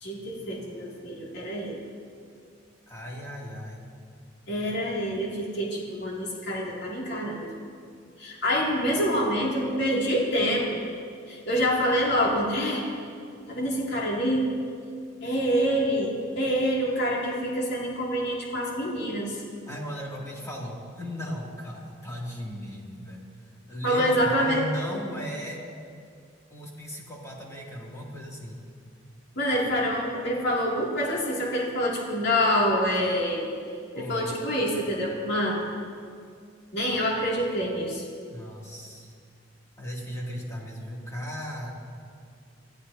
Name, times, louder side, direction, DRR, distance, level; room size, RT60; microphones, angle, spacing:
voice 1, 0.0-1.8 4.5-7.5 8.2-10.8 11.3-12.8 13.5-14.5 15.2-19.4 23.8-24.6 29.4-33.5 33.9-35.6 36.7-38.0, equal, 65° left, -4 dB, 2.5 m, -26 dB
voice 2, 2.9-3.8 19.7-23.2 23.7-25.6 26.5-28.6 33.9-34.3 38.3-39.1 39.8-41.7, equal, 15° left, -4 dB, 2.5 m, -36 dB
24.0 x 15.0 x 2.8 m, 2.2 s
head